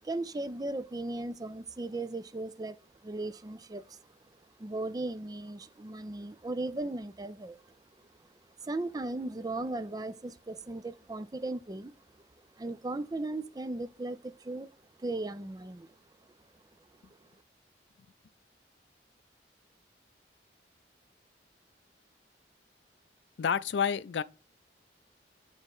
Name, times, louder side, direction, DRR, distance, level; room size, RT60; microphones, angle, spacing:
voice 1, 0.0-2.8 3.0-4.1 4.6-7.8 8.2-8.3 8.6-14.7 15.0-16.0 17.2-17.3, right 2 dB, 20° right, 0.4 m, -37 dB
voice 2, 23.4-24.2, left 7 dB, 80° left, 0.4 m, -29 dB
9.8 x 3.5 x 3.6 m
head